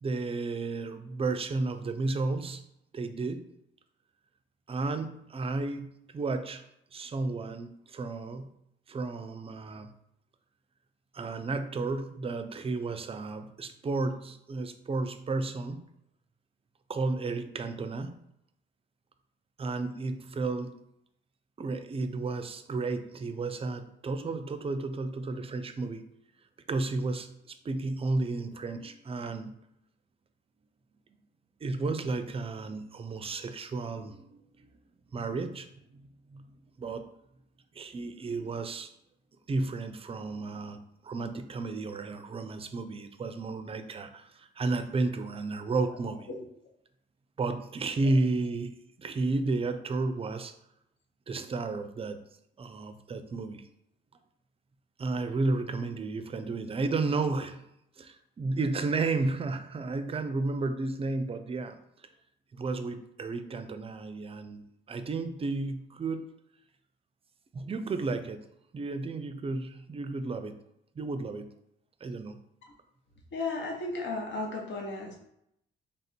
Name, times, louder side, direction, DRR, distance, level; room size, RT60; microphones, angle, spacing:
voice 1, 0.0-2.6 2.9-3.4 4.7-5.9 6.1-6.6 6.9-8.5 8.9-9.9 11.1-15.8 16.9-18.2 19.6-20.7 21.6-26.0 26.7-29.5 31.6-34.7 35.1-36.5 36.8-37.1 37.8-38.9 39.5-46.3 47.4-50.5 51.3-52.2 52.6-53.7 55.0-57.7 58.0-61.8 62.5-64.6 64.9-66.3 67.5-68.4 68.7-70.5 71.0-71.5 72.0-72.4, right 3 dB, 30° right, 9 dB, 0.4 m, -32 dB
voice 2, 73.3-75.2, left 3 dB, 65° left, 0 dB, 1.2 m, -34 dB
3.4 x 2.6 x 4.3 m, 0.77 s
cardioid pair, 90°, 20 cm